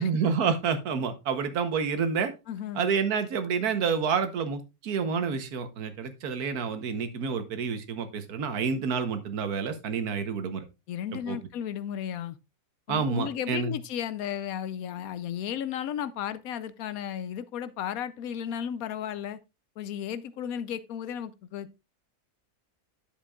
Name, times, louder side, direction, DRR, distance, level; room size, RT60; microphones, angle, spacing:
voice 1, 0.0-2.3 2.7-10.7 11.3-11.4 12.9-13.7, right 6 dB, 80° right, 1.5 m, -28 dB
voice 2, 2.5-2.9 10.9-12.4 12.9-19.4 19.8-21.8, left 9 dB, 75° left, 1.0 m, -34 dB
10.5 x 7.3 x 2.3 m
omnidirectional pair, 1.6 m